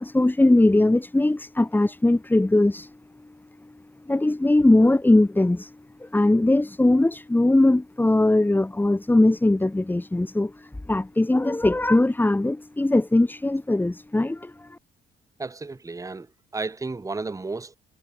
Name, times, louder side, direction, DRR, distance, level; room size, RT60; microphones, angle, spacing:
voice 1, 0.0-2.9 3.6-3.7 4.1-5.7 6.0-14.8, left 2 dB, 10° left, 1.0 m, -20 dB
voice 2, 15.4-16.3 16.5-17.7, right 3 dB, 15° right, 1.0 m, -32 dB
cardioid pair, 90°, 20 cm